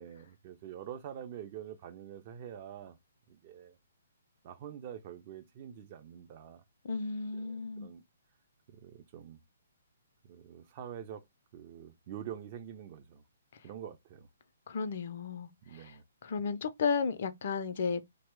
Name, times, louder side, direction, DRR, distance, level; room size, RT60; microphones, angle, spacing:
voice 1, 0.0-2.9 3.3-3.8 4.4-6.6 7.3-8.0 8.7-9.4 10.3-11.2 11.5-13.2 13.6-14.3 15.7-16.0, right 9 dB, 35° right, 0.5 m, -46 dB
voice 2, 6.8-7.9 14.7-18.0, left 5 dB, 50° left, 0.4 m, -34 dB
2.8 x 2.0 x 3.3 m
figure-of-eight pair, 125°, 0 cm